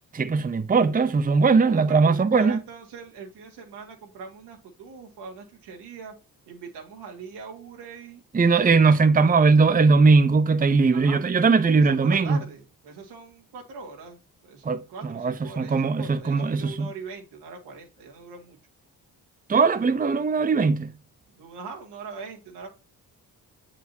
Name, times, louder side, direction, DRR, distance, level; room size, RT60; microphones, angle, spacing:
voice 1, 0.1-2.6 8.3-12.4 14.6-14.8 15.2-16.9 19.5-20.9, right 4 dB, 20° right, 0.7 m, -20 dB
voice 2, 1.7-6.1 6.5-8.2 10.9-11.2 11.6-18.6 21.3-22.7, right 5 dB, 85° right, 1.9 m, -41 dB
7.7 x 5.0 x 2.7 m
supercardioid pair, 55°, 40 cm